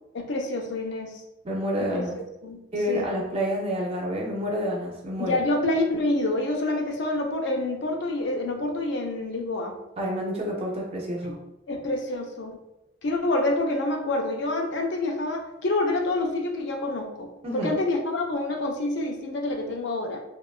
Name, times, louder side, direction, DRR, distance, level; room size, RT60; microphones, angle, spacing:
voice 1, 0.1-1.2 1.9-2.0 2.4-2.6 2.9-3.1 5.2-9.7 11.2-11.3 11.7-12.6 13.0-20.2, left 2 dB, 60° left, 3 dB, 0.4 m, -27 dB
voice 2, 1.4-2.2 2.7-5.4 10.0-11.4 17.4-17.8, equal, 30° right, -2 dB, 0.4 m, -29 dB
2.8 x 2.2 x 2.3 m, 0.91 s
head